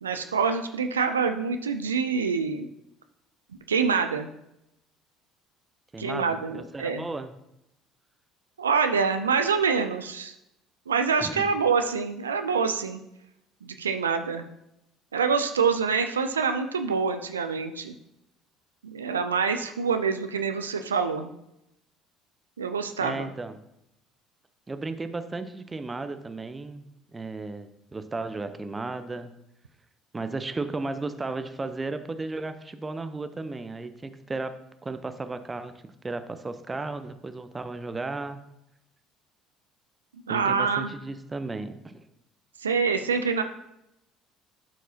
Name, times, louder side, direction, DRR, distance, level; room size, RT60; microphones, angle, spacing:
voice 1, 0.0-2.7 3.7-4.3 6.0-7.1 8.6-10.3 10.9-13.0 13.6-14.4 15.1-17.9 18.8-21.3 22.6-23.3 40.3-40.9 42.6-43.4, right 5 dB, 85° right, 7 dB, 0.4 m, -26 dB
voice 2, 5.9-7.3 11.2-11.5 23.0-23.6 24.7-26.9 27.1-29.3 30.1-35.7 36.0-38.4 40.3-42.0, right 3 dB, 20° right, 10 dB, 0.7 m, -34 dB
12.0 x 4.6 x 2.8 m, 0.83 s
hypercardioid pair, 60°, 0 cm